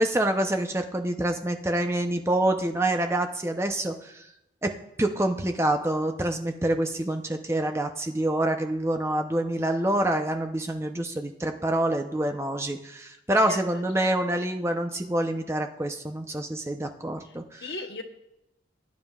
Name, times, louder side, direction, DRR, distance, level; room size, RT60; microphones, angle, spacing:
voice 1, 0.0-4.2 4.6-17.7, right 1 dB, 15° right, 5 dB, 0.6 m, -27 dB
voice 2, 13.4-14.1 17.2-17.3 17.6-18.0, left 3 dB, 75° left, 6 dB, 1.0 m, -37 dB
20.0 x 9.4 x 2.4 m, 0.87 s
head